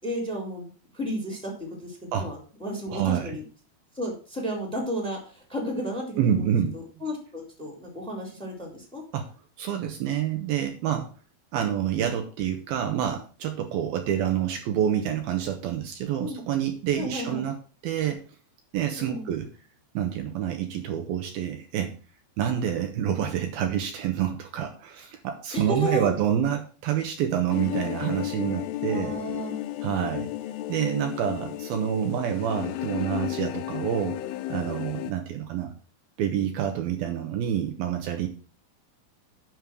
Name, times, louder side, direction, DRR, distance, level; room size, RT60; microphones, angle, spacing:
voice 1, 0.0-3.4 3.9-9.0 16.2-16.4 17.0-17.4 19.0-19.3 25.5-26.1 28.9-29.5, equal, ahead, 1 dB, 3.4 m, -33 dB
voice 2, 2.9-3.4 6.2-6.7 9.1-9.3 9.6-11.1 11.5-17.6 17.8-18.2 18.7-19.5 19.9-21.9 22.4-29.1 29.8-30.3 30.7-34.2 34.5-35.7 36.2-38.3, right 9 dB, 75° right, 5 dB, 2.8 m, -27 dB
sound 1, 27.5-35.1, left 15 dB, 80° left, 2.4 m, -33 dB
10.5 x 5.4 x 6.3 m, 0.37 s
omnidirectional pair, 4.6 m